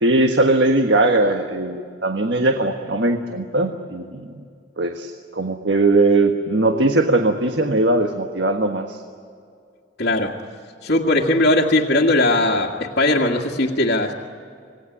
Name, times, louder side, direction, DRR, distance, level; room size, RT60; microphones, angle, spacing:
voice 1, 0.0-4.3 4.8-9.0, right 2 dB, 75° right, 5 dB, 1.5 m, -19 dB
voice 2, 10.0-10.3 10.8-14.1, left 2 dB, 65° left, -5 dB, 1.9 m, -19 dB
27.0 x 19.0 x 9.9 m, 2.3 s
head